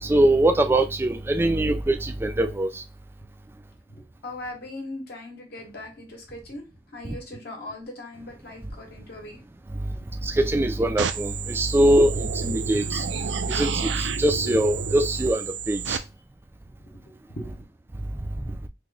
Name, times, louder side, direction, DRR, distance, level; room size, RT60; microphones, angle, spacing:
voice 1, 0.0-2.7 10.2-13.1 13.5-16.0, right 1 dB, 15° right, 0.3 m, -22 dB
voice 2, 4.0-6.7 6.9-9.4 10.0-10.3 16.9-17.6 18.4-18.5, left 1 dB, 60° left, 0.8 m, -40 dB
sound 1, 11.0-16.0, right 7 dB, 90° right, 0.4 m, -31 dB
2.9 x 2.1 x 3.8 m
head